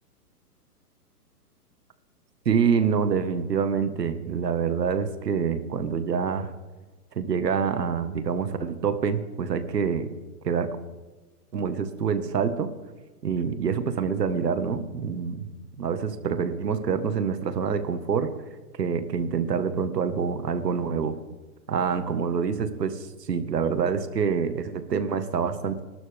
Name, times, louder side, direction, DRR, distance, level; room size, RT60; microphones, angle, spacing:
voice 1, 2.4-6.5 7.1-10.1 10.4-10.8 11.5-12.7 13.2-15.5 15.8-18.3 18.8-21.2 21.7-23.0 23.3-25.8, right 6 dB, 85° right, 10 dB, 1.7 m, -26 dB
27.0 x 12.5 x 3.6 m, 1.2 s
hypercardioid pair, 160°, 47 cm